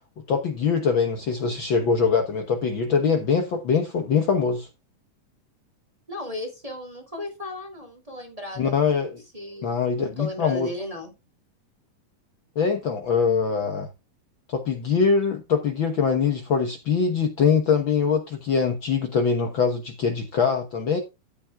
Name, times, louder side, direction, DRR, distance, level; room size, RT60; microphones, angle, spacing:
voice 1, 0.3-4.7 8.6-9.2 9.6-10.7 12.5-13.9 14.5-21.0, left 6 dB, 75° left, 1.1 m, -23 dB
voice 2, 6.1-8.8 9.3-11.1, left 1 dB, 10° right, 2.4 m, -35 dB
13.0 x 9.8 x 2.3 m
omnidirectional pair, 4.0 m